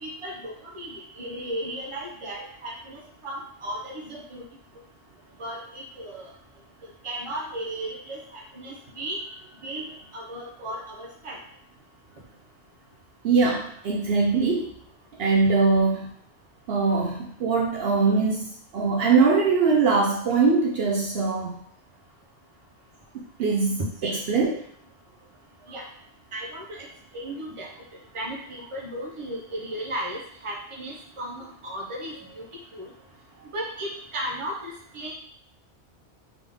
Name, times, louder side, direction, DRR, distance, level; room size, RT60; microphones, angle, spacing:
voice 1, 0.0-4.4 5.4-6.3 7.0-9.2 9.6-9.8 10.1-11.4 23.8-24.2 25.7-25.9 26.3-26.9 27.1-27.7 28.1-32.4 32.7-32.9 33.5-35.1, right 1 dB, 30° right, -2 dB, 0.9 m, -35 dB
voice 2, 13.2-14.7 15.2-16.1 16.7-18.5 18.7-21.5 23.4-23.8 24.3-24.5, right 4 dB, 65° right, -1 dB, 0.8 m, -21 dB
3.7 x 3.5 x 3.5 m, 0.66 s
omnidirectional pair, 1.1 m